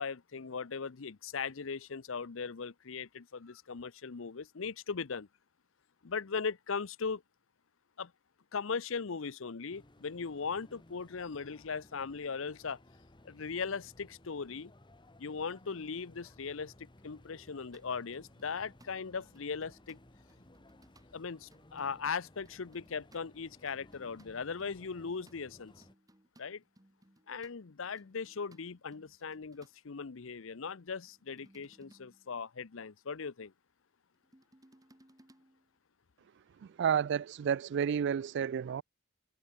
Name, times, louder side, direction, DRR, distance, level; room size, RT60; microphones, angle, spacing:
voice 1, 0.0-5.3 6.0-7.2 8.0-8.1 8.5-12.8 13.2-14.7 15.2-20.0 21.1-25.7 26.4-26.6 27.3-33.5, left 5 dB, 70° left, 0.7 m, -39 dB
sound 1, 9.7-25.9, left 1 dB, 25° left, 1.6 m, -59 dB
sound 2, 17.3-21.1 21.5-29.8 30.8-32.4 34.1-35.7 36.8-37.0, right 1 dB, 20° right, 1.7 m, -65 dB
voice 2, 36.6-38.8, right 8 dB, 55° right, 0.3 m, -31 dB
head